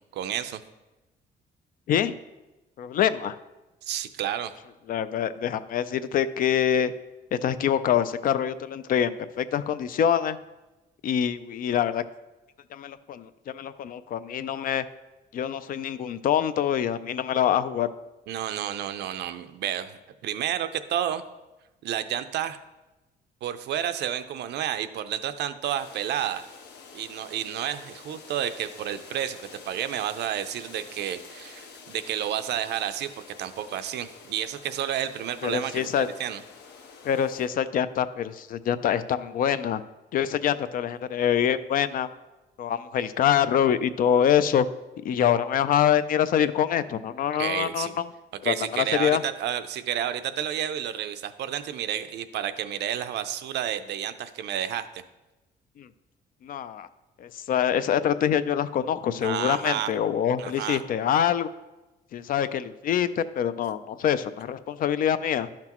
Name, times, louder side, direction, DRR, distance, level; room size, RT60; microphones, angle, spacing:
voice 1, 0.1-0.6 3.8-4.5 18.3-21.2 21.8-22.6 23.4-26.5 26.9-33.1 33.4-36.4 47.4-48.0 48.4-54.9 59.2-59.9 60.4-60.8, right 10 dB, 70° right, 11 dB, 0.5 m, -30 dB
voice 2, 2.8-3.3 4.9-6.9 7.3-10.4 11.0-12.0 12.7-14.8 15.3-17.9 35.4-36.1 37.0-39.8 40.1-42.1 42.6-44.7 45.0-48.0 48.4-49.2 55.8-55.9 56.4-56.9 57.2-61.5 62.1-65.5, left 9 dB, 50° left, 14 dB, 0.4 m, -25 dB
sound 1, 25.7-37.5, left 5 dB, 70° left, 1.0 m, -48 dB
11.5 x 5.9 x 3.0 m, 1.1 s
cardioid pair, 150°, 18 cm